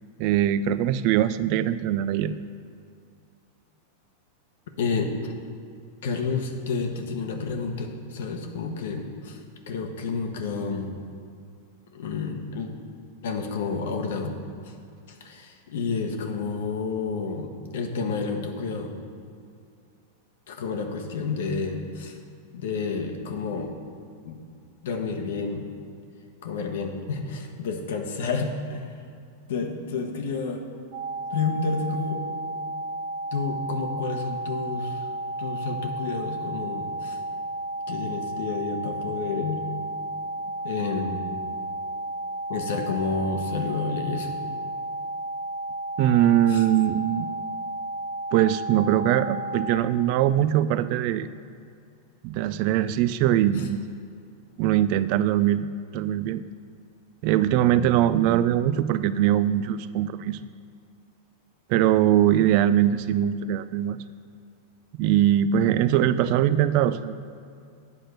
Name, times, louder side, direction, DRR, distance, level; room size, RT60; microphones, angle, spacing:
voice 1, 0.2-2.3 46.0-47.3 48.3-51.3 52.2-53.8 54.6-55.7 55.9-56.4 57.2-60.4 61.7-64.0 65.0-67.3, right 11 dB, 55° right, 14 dB, 0.3 m, -22 dB
voice 2, 4.8-5.3 6.0-9.4 9.7-10.9 11.9-12.7 13.2-14.3 14.6-14.7 15.1-18.9 20.5-22.2 22.5-23.8 24.2-24.4 24.8-25.6 26.4-29.0 29.5-30.6 31.3-32.2 33.3-35.1 35.4-37.2 37.9-39.6 40.6-41.3 42.5-44.3 46.5-46.6 53.5-53.7, left 4 dB, 75° left, 4 dB, 0.9 m, -30 dB
sound 1, 30.9-49.8, right 2 dB, 40° right, 1.2 m, -33 dB
8.4 x 4.4 x 6.5 m, 2.4 s
hypercardioid pair, 120°, 0 cm